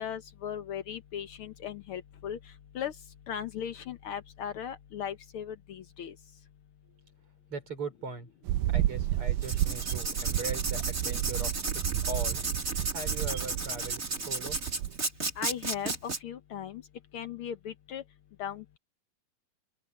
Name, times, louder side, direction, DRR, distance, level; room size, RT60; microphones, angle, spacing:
voice 1, 0.0-2.4 2.7-2.9 3.3-6.1 15.4-15.9 16.2-16.8 17.1-18.0 18.4-18.8, left 9 dB, 85° left, 1.2 m, -37 dB
voice 2, 7.5-12.4 12.9-14.6, right 3 dB, 40° right, 6.5 m, -40 dB
sound 1, 8.5-15.0, right 13 dB, 85° right, 2.3 m, -31 dB
Writing, 9.4-16.2, right 3 dB, 25° right, 3.6 m, -34 dB
open air
omnidirectional pair, 3.8 m